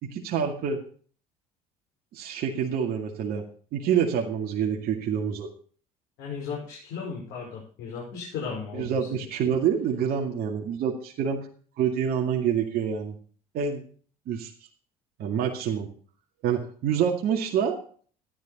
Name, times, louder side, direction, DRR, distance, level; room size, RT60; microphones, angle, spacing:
voice 1, 0.0-0.8 2.1-3.4 3.7-5.5 8.7-11.5 11.8-13.2 13.5-13.8 14.3-14.5 15.2-15.9 16.4-17.8, right 8 dB, 60° right, 0 dB, 2.2 m, -27 dB
voice 2, 6.2-8.9, left 6 dB, 65° left, -3 dB, 5.1 m, -35 dB
13.5 x 11.0 x 4.1 m, 0.43 s
hypercardioid pair, 60°, 18 cm